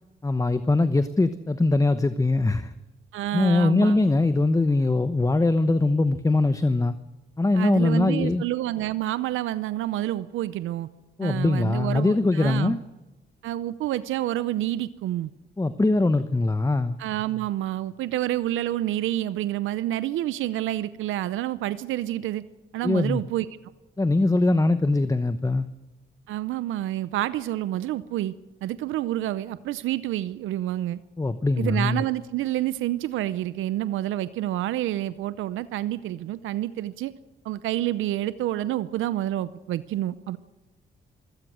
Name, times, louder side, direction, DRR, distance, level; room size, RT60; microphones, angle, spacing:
voice 1, 0.2-2.7 3.3-6.9 7.4-8.4 11.2-12.8 15.6-17.0 22.8-23.2 24.0-25.7 31.2-32.0, left 2 dB, 15° left, 12 dB, 1.0 m, -22 dB
voice 2, 3.1-4.0 7.5-10.9 11.2-12.7 13.4-15.3 17.0-22.4 22.7-23.5 26.3-28.3 28.6-31.0 31.6-37.1 37.4-40.4, right 14 dB, 85° right, 15 dB, 0.7 m, -28 dB
27.0 x 16.5 x 6.3 m, 1.1 s
supercardioid pair, 65°, 20 cm